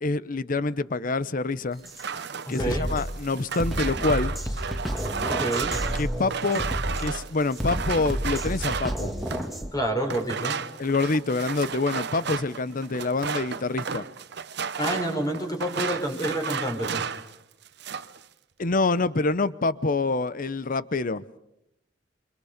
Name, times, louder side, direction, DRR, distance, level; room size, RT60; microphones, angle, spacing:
voice 1, 0.0-1.8 2.5-4.4 6.0-6.7 7.0-9.1 10.8-14.0 18.6-21.2, left 3 dB, 50° left, 0.8 m, -26 dB
sound 1, 1.8-9.6 10.1-17.3 17.6-18.2, right 6 dB, 65° right, 0.9 m, -33 dB
Drum kit, 1.9-2.0 2.5-9.7, equal, ahead, 2.2 m, -31 dB
voice 2, 2.5-2.9 5.3-5.8 9.7-10.6 14.8-17.0, right 1 dB, 20° left, 4.2 m, -28 dB
28.5 x 25.0 x 5.1 m
head